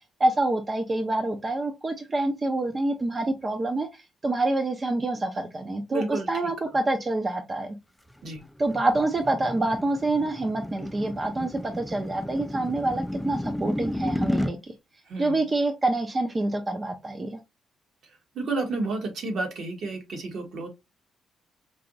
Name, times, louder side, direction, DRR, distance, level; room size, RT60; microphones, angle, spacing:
voice 1, 0.2-7.8 8.6-14.7 15.2-17.4, right 2 dB, 30° right, 0.7 m, -27 dB
voice 2, 5.9-6.3 8.2-8.4 15.1-15.5 18.3-20.7, right 3 dB, 65° right, 1.5 m, -31 dB
sound 1, 8.1-14.5, left 1 dB, 5° left, 0.4 m, -32 dB
4.7 x 2.9 x 2.6 m
cardioid pair, 90°, 0 cm